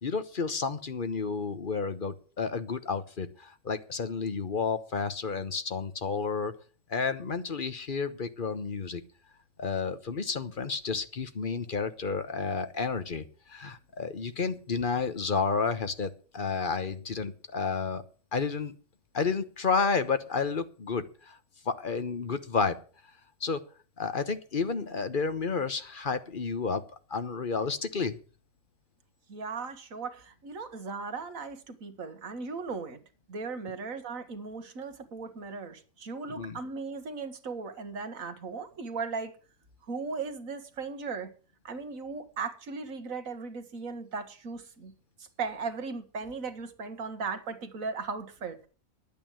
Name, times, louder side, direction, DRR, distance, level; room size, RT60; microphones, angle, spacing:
voice 1, 0.0-6.5 6.9-9.0 9.6-18.0 18.3-18.7 19.1-21.4 21.6-22.8 23.4-23.6 24.0-26.8 27.1-28.2 36.4-36.6, left 5 dB, 40° left, 1.1 m, -31 dB
voice 2, 29.3-33.0 33.3-39.4 39.8-41.3 41.6-44.9 45.2-48.7, right 4 dB, 65° right, 1.9 m, -37 dB
11.0 x 8.8 x 7.4 m
omnidirectional pair, 1.6 m